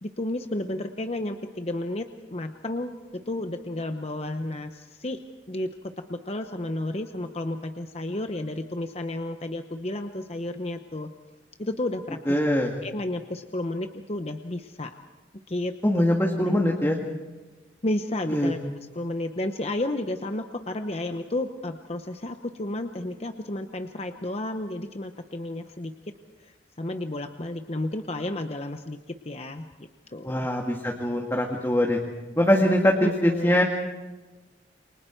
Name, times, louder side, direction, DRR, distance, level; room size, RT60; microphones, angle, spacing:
voice 1, 0.0-2.9 3.3-5.2 5.5-5.7 6.0-11.1 11.6-14.9 15.5-15.7 16.4-16.7 17.8-25.9 26.4-29.7 30.1-30.5 33.0-33.6, left 1 dB, 35° left, 7 dB, 0.8 m, -32 dB
voice 2, 12.3-12.7 15.8-17.0 18.3-18.5 30.2-32.0 32.4-33.6, left 1 dB, 15° left, 0 dB, 1.9 m, -22 dB
29.0 x 24.5 x 4.6 m, 1.2 s
head